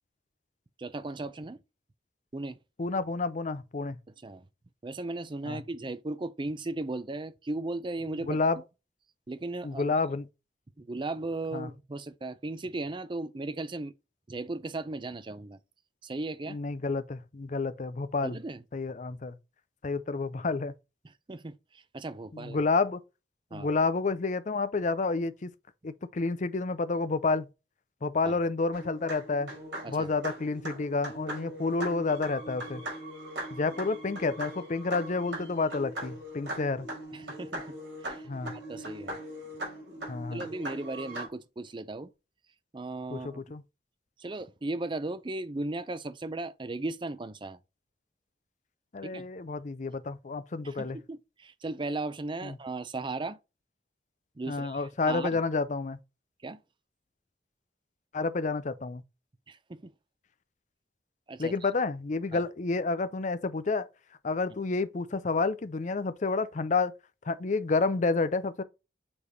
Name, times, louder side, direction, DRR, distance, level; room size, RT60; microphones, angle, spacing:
voice 1, 0.8-1.6 2.3-2.6 4.2-4.5 4.8-8.5 9.3-9.8 10.8-13.9 14.3-15.6 16.0-16.6 18.2-18.6 21.3-22.6 23.5-23.7 28.2-28.4 29.8-30.1 37.1-37.8 38.0-38.2 38.5-39.2 40.3-42.1 42.7-43.4 44.2-47.6 49.0-49.3 50.6-53.4 54.4-55.4 56.4-56.6 59.5-59.9 61.3-61.5 62.3-62.4, right 2 dB, 25° right, 0.5 m, -36 dB
voice 2, 2.8-4.0 5.5-5.6 8.3-8.6 9.6-10.3 11.5-11.7 16.5-18.4 18.7-19.4 19.8-20.7 22.3-23.0 23.5-25.5 25.8-27.5 28.0-29.5 29.9-32.8 33.5-36.9 38.3-38.5 40.1-40.5 43.1-43.6 48.9-51.0 52.4-52.6 54.5-56.0 58.1-59.0 61.4-63.9 64.2-66.9 67.3-68.6, left 3 dB, 45° left, 0.5 m, -29 dB
sound 1, 28.7-41.3, right 1 dB, 85° right, 4.1 m, -40 dB
7.0 x 3.3 x 4.0 m
head